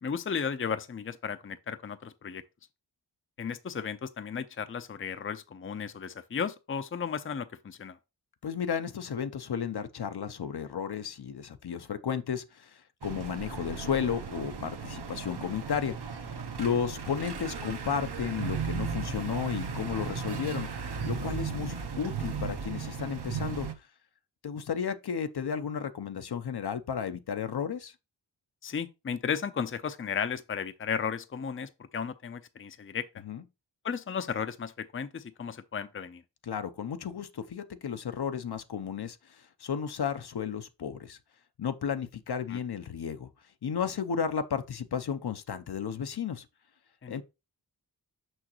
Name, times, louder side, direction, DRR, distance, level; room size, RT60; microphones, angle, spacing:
voice 1, 0.0-2.4 3.4-8.0 28.6-33.1 33.8-36.2 42.5-42.6 47.0-47.2, left 6 dB, 30° left, 0.6 m, -34 dB
voice 2, 8.4-16.2 16.6-20.7 21.0-23.7 24.4-27.9 33.2-33.4 36.4-41.2 41.6-43.3 43.6-46.5 47.1-47.2, left 7 dB, 60° left, 0.7 m, -33 dB
sound 1, 13.0-23.7, right 6 dB, 60° right, 1.1 m, -36 dB
6.2 x 5.7 x 3.0 m
cardioid pair, 55°, 44 cm